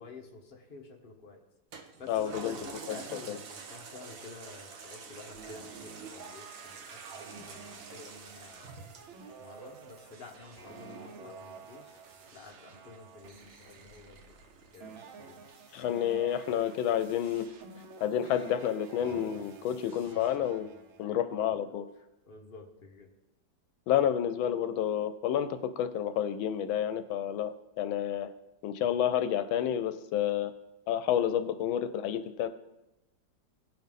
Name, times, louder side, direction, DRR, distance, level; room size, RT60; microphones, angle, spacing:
voice 1, 0.0-1.4 2.0-8.8 9.4-12.0 12.3-14.3 14.7-15.5 19.8-19.9 21.0-21.4 22.2-23.1 23.9-24.1 28.8-28.9 30.2-30.3, left 3 dB, 30° left, 0 dB, 1.2 m, -50 dB
Toilet flush, 1.7-16.5 17.0-17.1, right 5 dB, 55° right, 1.0 m, -49 dB
voice 2, 2.1-2.6 2.9-3.4 15.7-17.4 18.0-20.7 21.0-21.8 23.9-28.3 28.6-30.5 30.9-32.5, left 10 dB, 85° left, 10 dB, 1.4 m, -30 dB
sound 1, 5.3-21.0, right 5 dB, 85° right, 1.8 m, -50 dB
17.5 x 5.8 x 3.6 m, 0.95 s
omnidirectional pair, 2.2 m